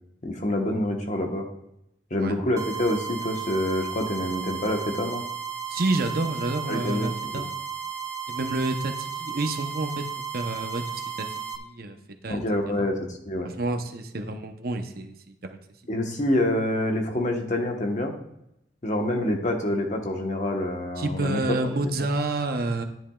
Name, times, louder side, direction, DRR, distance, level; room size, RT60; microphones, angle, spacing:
voice 1, 0.2-1.5 2.1-5.2 6.7-7.4 12.3-13.5 15.9-18.1 18.8-21.7, left 1 dB, 40° left, 3 dB, 1.1 m, -27 dB
sound 1, 2.6-11.6, right 7 dB, 20° right, 0.5 m, -34 dB
voice 2, 5.7-7.5 8.3-10.0 10.3-12.0 12.2-12.4 12.8-12.9 13.6-15.6 21.0-22.8, right 2 dB, 55° right, 5 dB, 0.8 m, -29 dB
10.5 x 10.5 x 2.4 m, 0.82 s
head